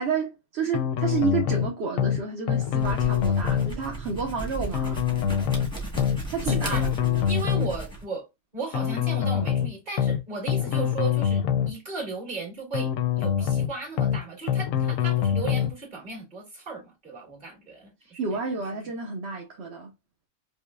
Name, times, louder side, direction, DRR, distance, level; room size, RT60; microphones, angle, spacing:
voice 1, 0.0-5.0 6.3-7.4 18.0-19.9, right 5 dB, 55° right, 0.9 m, -30 dB
sound 1, 0.7-1.7 2.0-2.2 2.5-3.7 4.7-5.7 6.0-6.2 6.5-7.7 8.7-9.7 10.0-10.2 10.5-11.7 12.7-13.7 14.0-14.2 14.5-15.7, left 9 dB, 70° left, 0.9 m, -25 dB
sound 2, 2.7-8.0, right 2 dB, 5° left, 0.8 m, -35 dB
voice 2, 6.5-6.8 7.3-8.3 8.5-18.4, right 4 dB, 30° right, 2.0 m, -36 dB
5.4 x 2.1 x 2.2 m
omnidirectional pair, 1.6 m